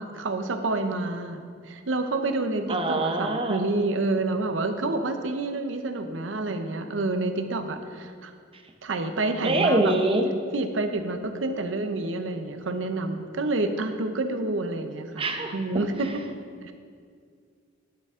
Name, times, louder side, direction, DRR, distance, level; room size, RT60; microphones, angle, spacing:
voice 1, 0.0-8.3 8.8-9.9 10.5-16.2 16.6-16.7, right 2 dB, 80° right, 7 dB, 0.8 m, -28 dB
voice 2, 2.7-3.6 9.4-10.3 15.2-15.5, right 2 dB, 30° right, 4 dB, 0.9 m, -24 dB
11.5 x 6.9 x 3.7 m, 2.1 s
head